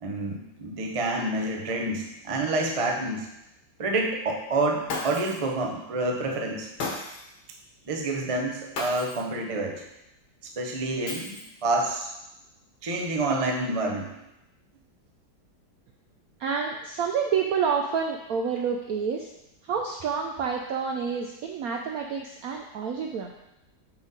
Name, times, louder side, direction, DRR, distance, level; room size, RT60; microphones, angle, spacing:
voice 1, 0.0-3.3 3.8-6.7 7.9-9.8 10.4-12.1 12.8-14.1, right 2 dB, 50° right, 1 dB, 0.4 m, -28 dB
Shatter, 4.9-5.5 6.8-7.4 8.7-9.3 11.1-11.7, left 3 dB, 60° left, 1.8 m, -34 dB
voice 2, 16.4-19.3 19.7-23.3, right 6 dB, 80° right, 2 dB, 0.8 m, -28 dB
6.1 x 5.1 x 4.0 m, 0.88 s
omnidirectional pair, 2.1 m